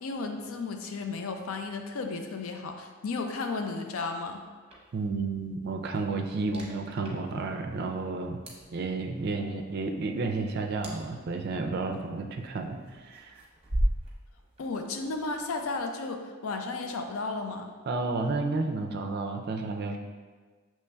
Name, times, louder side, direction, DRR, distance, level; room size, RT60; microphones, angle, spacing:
voice 1, 0.0-4.4 14.6-17.7, left 3 dB, 80° left, 5 dB, 0.5 m, -34 dB
sound 1, 4.7-15.8, right 1 dB, 30° right, 0.8 m, -39 dB
voice 2, 4.9-8.4 8.7-13.3 17.9-20.0, right 3 dB, 50° right, 4 dB, 0.4 m, -31 dB
6.7 x 3.1 x 2.2 m, 1.5 s
head